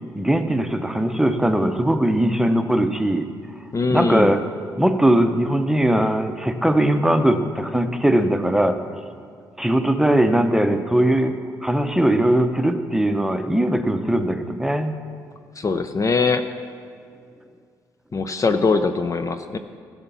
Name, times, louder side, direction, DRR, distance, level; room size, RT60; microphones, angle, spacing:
voice 1, 0.1-3.3 3.9-4.4 4.8-8.8 9.6-14.9, right 1 dB, 5° right, 7 dB, 0.8 m, -20 dB
voice 2, 3.7-4.4 15.6-16.4 18.1-19.6, left 4 dB, 35° left, 9 dB, 0.5 m, -21 dB
12.0 x 5.8 x 6.9 m, 2.2 s
supercardioid pair, 55°, 9 cm